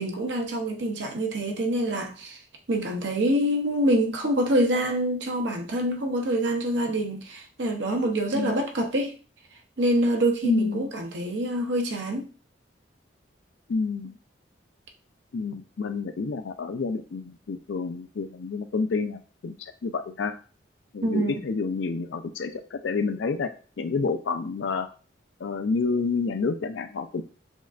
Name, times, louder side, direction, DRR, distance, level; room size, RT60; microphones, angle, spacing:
voice 1, 0.0-2.4 2.7-9.1 9.8-12.3 21.0-21.4, right 1 dB, 70° right, 0.7 m, -26 dB
voice 2, 10.4-10.9 13.7-14.2 15.3-20.4 20.9-23.5 23.8-24.9 25.4-27.2, left 4 dB, 75° left, 0.4 m, -29 dB
6.2 x 2.5 x 2.4 m
head